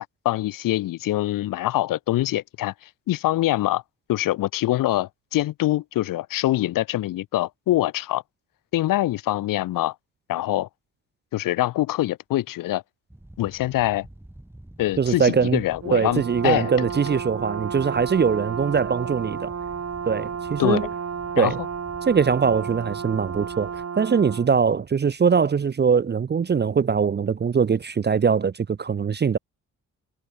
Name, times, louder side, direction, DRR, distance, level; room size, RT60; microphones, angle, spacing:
voice 1, 0.2-3.8 4.1-8.2 8.7-9.9 10.3-10.7 11.3-12.8 13.4-14.1 14.8-17.2 20.6-20.9 21.3-21.5, left 15 dB, 80° left, 0.7 m, -24 dB
sound 1, 13.1-23.9, right 1 dB, 5° right, 2.5 m, -47 dB
voice 2, 15.0-15.6 15.9-19.5 20.1-20.9 21.4-21.6 22.1-29.4, right 6 dB, 30° right, 0.6 m, -22 dB
Brass instrument, 15.8-24.5, right 7 dB, 50° right, 3.1 m, -32 dB
cardioid pair, 65°, 32 cm